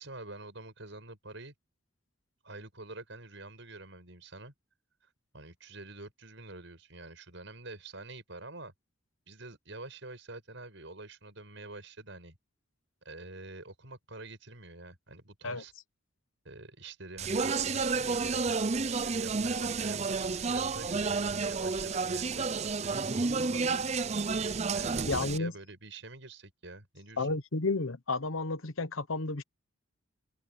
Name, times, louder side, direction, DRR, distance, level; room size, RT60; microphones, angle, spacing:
voice 1, 0.0-1.5 2.4-4.5 5.3-8.7 9.3-12.4 13.0-15.7 16.4-23.7 24.7-27.4, right 2 dB, 65° right, 6.2 m, -47 dB
Speech, 17.2-25.4, right 4 dB, 30° right, 0.5 m, -31 dB
voice 2, 25.1-25.5 27.2-29.4, left 3 dB, 80° left, 1.1 m, -31 dB
open air
head